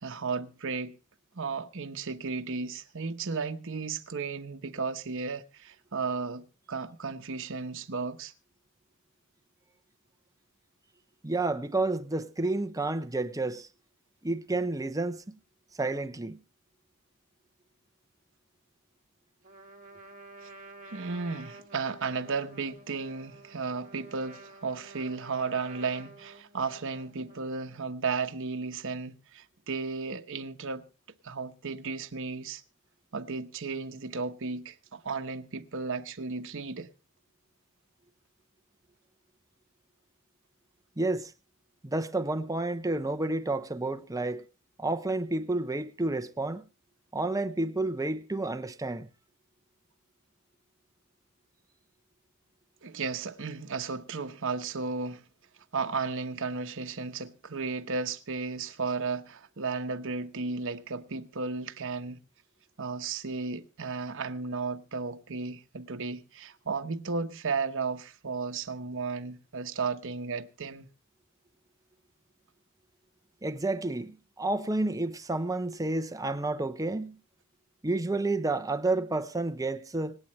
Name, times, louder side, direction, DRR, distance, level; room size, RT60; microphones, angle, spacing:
voice 1, 0.0-1.0 1.3-8.3 20.4-20.5 20.9-30.8 31.2-32.6 33.1-36.9 52.8-55.2 55.7-62.2 62.8-70.9, right 4 dB, 60° right, 1.1 m, -34 dB
voice 2, 11.2-13.7 14.2-15.3 15.8-16.4 41.0-41.3 41.8-44.4 44.8-46.6 47.1-49.1 73.4-77.2 77.8-80.2, right 2 dB, 15° right, 0.8 m, -30 dB
Trumpet, 19.4-27.6, right 2 dB, 40° right, 2.2 m, -50 dB
26.0 x 8.7 x 3.2 m
head